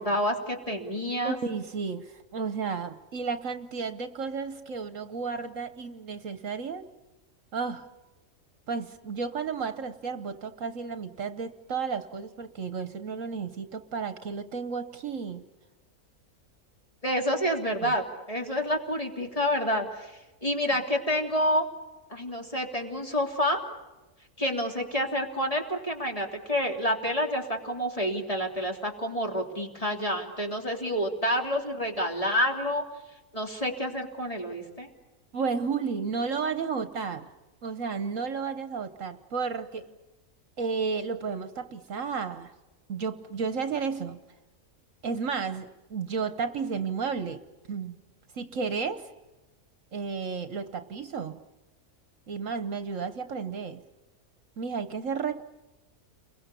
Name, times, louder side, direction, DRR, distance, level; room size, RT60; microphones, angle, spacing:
voice 1, 0.0-1.4 17.0-20.1 20.4-21.7 22.1-23.6 24.4-32.8 33.3-34.9, equal, 25° left, 1 dB, 3.3 m, -28 dB
voice 2, 1.2-6.9 7.5-7.9 8.7-15.4 17.8-17.9 35.3-37.3 37.6-40.0 40.6-42.5 42.9-44.2 45.0-48.0 48.3-49.1 49.9-51.4 52.3-53.8 54.6-55.4, right 5 dB, 60° right, 11 dB, 1.4 m, -32 dB
30.0 x 22.5 x 7.0 m, 1.1 s
omnidirectional pair, 1.5 m